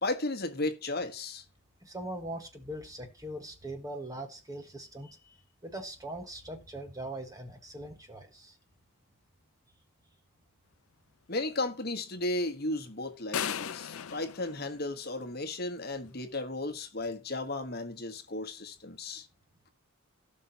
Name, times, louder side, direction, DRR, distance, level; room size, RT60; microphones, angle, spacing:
voice 1, 0.0-1.4 11.3-19.3, left 2 dB, 45° left, 1.3 m, -34 dB
voice 2, 1.8-5.2 5.6-8.6, right 1 dB, 15° right, 1.5 m, -41 dB
sound 1, 13.3-15.5, left 8 dB, 75° left, 0.5 m, -37 dB
17.0 x 5.8 x 2.9 m
head